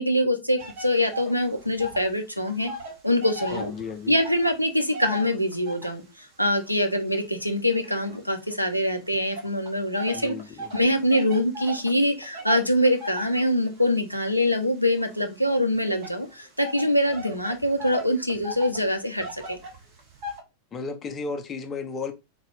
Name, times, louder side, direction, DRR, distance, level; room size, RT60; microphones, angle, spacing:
voice 1, 0.0-2.7 3.0-3.7 4.1-6.0 6.4-10.4 10.7-19.6, left 1 dB, 90° right, 0.6 m, -24 dB
sound 1, 0.6-2.2 2.4-6.1 6.7-8.7 9.4-20.4, right 1 dB, 45° right, 1.1 m, -39 dB
voice 2, 3.5-4.2 10.1-10.7 20.7-22.1, left 4 dB, 25° left, 0.7 m, -34 dB
3.6 x 2.4 x 3.5 m
figure-of-eight pair, 90°, 0 cm